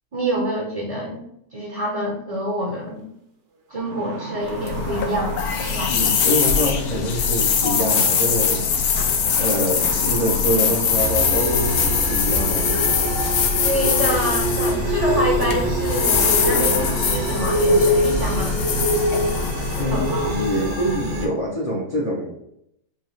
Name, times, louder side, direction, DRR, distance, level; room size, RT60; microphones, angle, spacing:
voice 1, 0.1-1.2 1.5-3.1 3.7-5.9 13.6-18.6 19.7-20.3, equal, 35° right, -2 dB, 0.6 m, -26 dB
sound 1, 3.0-3.1 3.5-7.0 8.4-8.8 9.6-12.4 13.6-13.7 15.2-18.1 18.6-18.7 19.2-19.3 19.6-20.1, right 2 dB, 55° right, 0.9 m, -37 dB
sound 2, 4.4-20.6, left 6 dB, 80° left, 1.1 m, -22 dB
voice 2, 5.9-8.6 9.4-12.9 19.8-22.3, equal, 45° left, -4 dB, 0.4 m, -25 dB
sound 3, 10.9-21.2, equal, 75° right, 1.3 m, -24 dB
5.5 x 2.3 x 3.1 m, 0.76 s
omnidirectional pair, 1.6 m